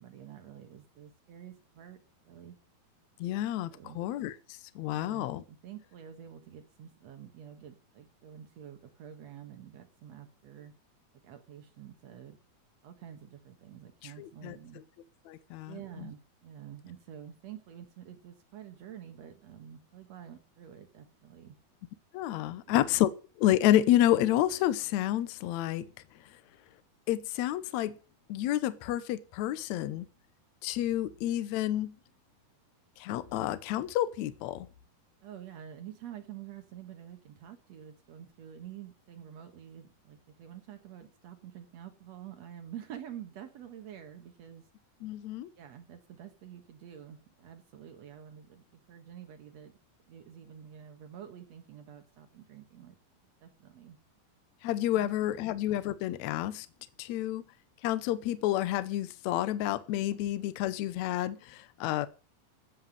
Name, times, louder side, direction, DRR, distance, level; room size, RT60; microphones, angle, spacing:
voice 1, 0.0-2.6 3.7-4.0 4.9-10.7 11.2-12.4 12.8-14.8 15.7-21.5 22.6-22.9 35.2-44.7 45.6-49.7 50.1-53.0 53.4-54.0 54.9-55.1 55.4-55.5, right 10 dB, 60° right, 7 dB, 2.0 m, -48 dB
voice 2, 3.2-3.7 4.0-5.4 14.0-14.6 15.3-16.1 22.1-23.1 23.4-25.9 27.1-28.0 28.3-30.1 30.6-32.0 33.0-34.7 45.0-45.5 54.6-56.7 57.0-57.4 57.8-62.1, left 13 dB, 80° left, 14 dB, 1.6 m, -29 dB
15.0 x 5.9 x 7.4 m, 0.36 s
omnidirectional pair, 4.3 m